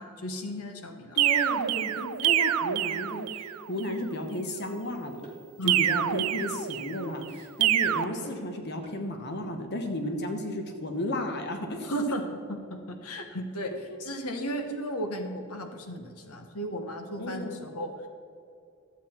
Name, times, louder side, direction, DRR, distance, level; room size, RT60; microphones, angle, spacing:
voice 1, 0.0-1.2 5.6-6.1 10.0-10.2 11.8-13.7 14.0-17.9, equal, 85° left, 5 dB, 1.1 m, -35 dB
voice 2, 1.1-5.3 5.6-12.2 17.2-17.7, left 1 dB, 50° left, 4 dB, 1.0 m, -33 dB
sound 1, 1.2-3.6 5.7-7.0 7.6-8.0, right 12 dB, 80° right, 0.4 m, -26 dB
sound 2, 4.6-4.8 5.2-5.4 5.8-6.1 6.4-6.6 7.0-7.3 7.6-7.8 8.2-8.5 8.8-9.0, right 3 dB, 25° left, 1.7 m, -47 dB
13.0 x 8.3 x 4.4 m, 2.5 s
head